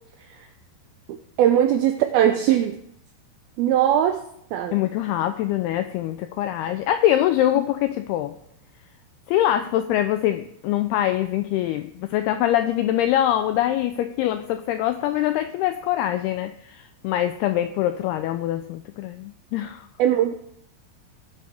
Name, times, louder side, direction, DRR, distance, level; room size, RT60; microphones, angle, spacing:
voice 1, 1.1-2.8 3.6-4.2 4.5-4.8 20.0-20.3, right 10 dB, 85° right, 7 dB, 2.1 m, -20 dB
voice 2, 4.7-8.3 9.3-19.9, left 12 dB, 90° left, 9 dB, 2.2 m, -24 dB
18.0 x 8.5 x 3.4 m, 0.73 s
omnidirectional pair, 5.1 m